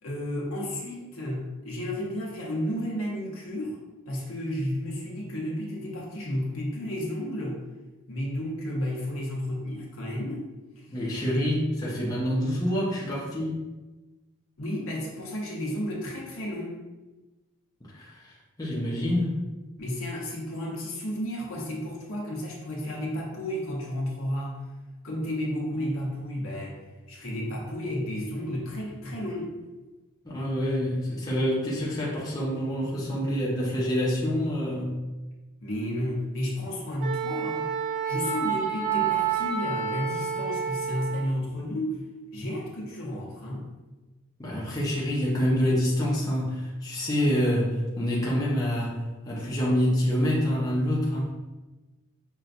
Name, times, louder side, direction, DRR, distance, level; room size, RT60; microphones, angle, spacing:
voice 1, 0.0-3.8 4.1-7.6 8.1-10.4 14.6-16.8 19.8-24.6 25.0-26.8 27.1-29.5 35.6-37.6 38.1-41.9 42.3-43.7, equal, 70° left, -3 dB, 1.0 m, -32 dB
voice 2, 10.9-13.6 17.8-19.3 30.2-35.0 44.4-49.0 49.3-51.3, equal, 15° left, -6 dB, 0.6 m, -27 dB
Wind instrument woodwind instrument, 37.0-41.3, right 7 dB, 35° right, 0.8 m, -29 dB
5.6 x 2.3 x 2.5 m, 1.2 s
head